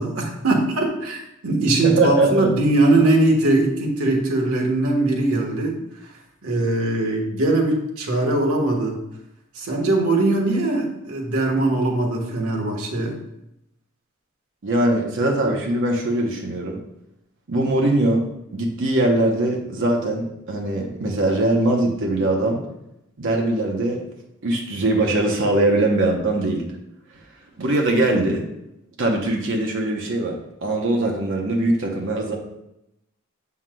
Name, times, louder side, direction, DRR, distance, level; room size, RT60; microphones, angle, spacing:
voice 1, 0.0-5.8 6.0-6.1 6.4-9.0 9.5-13.1, right 2 dB, 75° right, 0 dB, 1.3 m, -21 dB
voice 2, 1.8-2.5 14.6-16.8 17.5-18.3 18.5-22.6 23.2-24.0 24.4-26.7 27.6-28.4 29.0-32.4, right 2 dB, 60° right, 0 dB, 0.8 m, -21 dB
7.4 x 5.7 x 2.2 m, 0.85 s
head